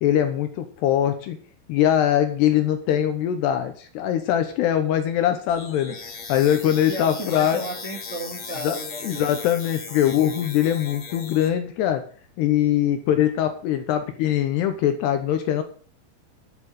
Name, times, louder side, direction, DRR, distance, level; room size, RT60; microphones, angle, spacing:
voice 1, 0.0-1.4 1.7-6.0 6.3-7.6 8.6-8.8 9.0-12.0 12.4-15.6, left 11 dB, 75° left, 8 dB, 2.6 m, -22 dB
sound 1, 5.5-11.5, left 5 dB, 50° left, 1.5 m, -37 dB
voice 2, 6.9-9.4, right 1 dB, 80° right, -1 dB, 0.6 m, -34 dB
11.5 x 7.4 x 6.5 m, 0.44 s
omnidirectional pair, 5.7 m